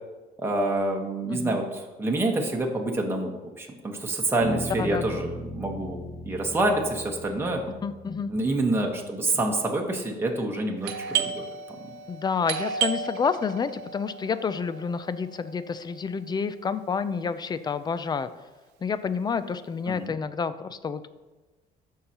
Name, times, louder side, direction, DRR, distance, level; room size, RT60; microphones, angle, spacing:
voice 1, 0.4-7.6 8.3-11.5 19.9-20.1, right 2 dB, 15° right, 0 dB, 1.2 m, -27 dB
voice 2, 1.3-1.6 4.8-5.2 7.8-8.3 12.1-18.3 18.8-21.1, left 5 dB, 25° left, 13 dB, 0.5 m, -29 dB
Bass guitar, 4.4-8.8, right 1 dB, 40° right, 1.1 m, -38 dB
Doorbell, 10.8-16.3, right 7 dB, 85° right, 0.7 m, -33 dB
13.5 x 5.6 x 2.9 m, 1.2 s
cardioid pair, 110°, 17 cm